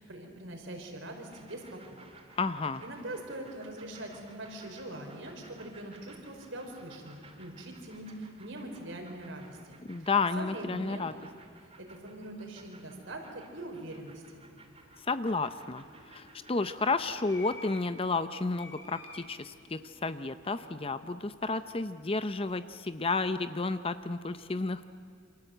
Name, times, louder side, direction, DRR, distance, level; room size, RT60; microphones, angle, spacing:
voice 1, 0.0-2.0 2.8-10.1 10.4-11.1 11.6-14.4, right 1 dB, 65° right, 3 dB, 4.9 m, -43 dB
sound 1, 1.3-17.8, right 3 dB, 30° right, 2.5 m, -57 dB
voice 2, 2.4-2.8 9.9-11.1 15.0-15.8 16.1-24.9, left 3 dB, 30° left, 11 dB, 0.6 m, -31 dB
sound 2, 14.6-23.1, left 2 dB, 60° left, 3.3 m, -55 dB
28.5 x 26.5 x 8.0 m, 2.3 s
head